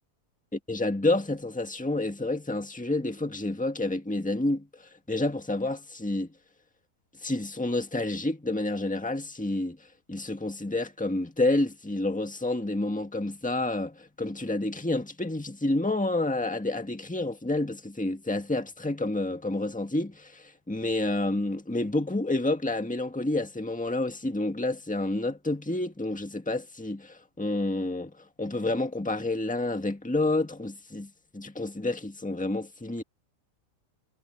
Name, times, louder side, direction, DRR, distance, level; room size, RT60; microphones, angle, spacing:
voice 1, 0.7-6.3 7.2-9.8 10.1-33.0, left 2 dB, 5° left, 1.6 m, -29 dB
omnidirectional pair, 1.6 m